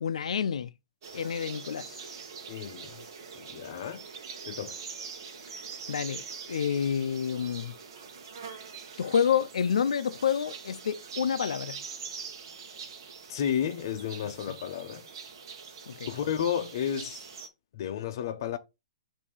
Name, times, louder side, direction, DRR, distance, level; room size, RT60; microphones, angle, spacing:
voice 1, 0.0-0.7 1.1-2.1 5.9-7.7 9.0-11.8 15.9-16.1, left 7 dB, 80° left, 0.4 m, -29 dB
sound 1, 1.0-17.5, right 6 dB, 40° right, 1.1 m, -44 dB
voice 2, 2.5-3.0 3.4-4.1 4.4-4.8 13.3-15.1 16.0-17.2 17.7-18.6, left 9 dB, 35° left, 0.7 m, -32 dB
7.0 x 2.7 x 4.9 m
hypercardioid pair, 180°, 3 cm